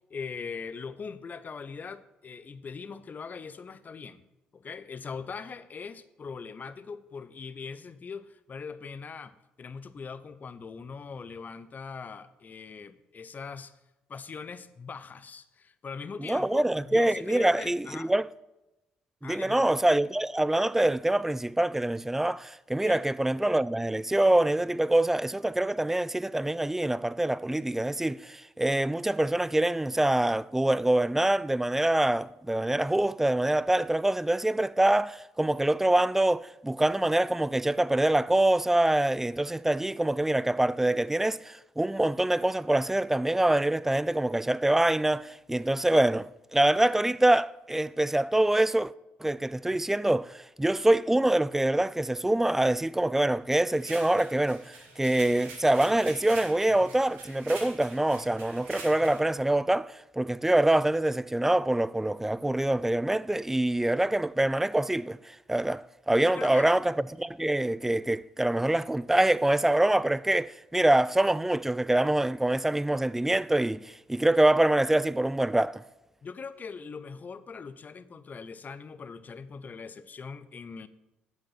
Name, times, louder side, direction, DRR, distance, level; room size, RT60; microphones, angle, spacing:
voice 1, 0.1-4.3 4.5-13.7 14.1-18.1 19.2-19.7 22.8-23.0 66.2-66.7 76.2-80.9, left 5 dB, 35° left, 0.7 m, -41 dB
voice 2, 16.2-18.3 19.2-48.9 49.2-75.8, right 1 dB, 5° right, 0.3 m, -25 dB
sound 1, 53.7-59.3, right 3 dB, 75° right, 2.5 m, -45 dB
8.8 x 7.4 x 5.6 m
hypercardioid pair, 50°, 5 cm